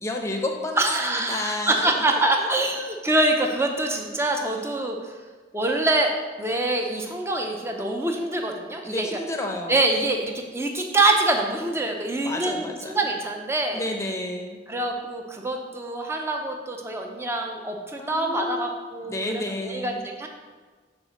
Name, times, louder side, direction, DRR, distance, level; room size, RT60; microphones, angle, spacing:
voice 1, 0.0-2.6 8.8-9.8 12.2-13.0 13.7-14.6 18.0-18.8 19.0-20.0, left 1 dB, 15° left, 2 dB, 0.7 m, -31 dB
voice 2, 0.8-5.1 5.5-6.1 6.4-9.1 9.7-13.9 14.7-20.3, right 2 dB, 15° right, 2 dB, 0.7 m, -25 dB
6.1 x 3.8 x 6.0 m, 1.4 s
head